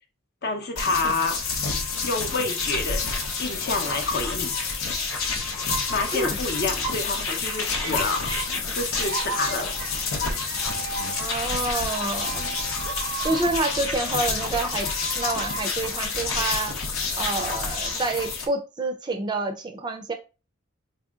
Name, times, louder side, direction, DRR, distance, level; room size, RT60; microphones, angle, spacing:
voice 1, 0.4-1.4 2.0-3.0 3.4-4.5 5.9-8.3 8.7-9.7, left 3 dB, 50° left, 0.6 m, -28 dB
sound 1, 0.8-18.5, left 4 dB, 90° left, 0.7 m, -28 dB
sound 2, 7.3-14.8, right 5 dB, 80° right, 0.5 m, -37 dB
voice 2, 11.2-12.6 13.2-14.9 15.1-16.7 17.2-20.1, right 2 dB, 20° right, 0.4 m, -28 dB
4.2 x 2.7 x 2.3 m
head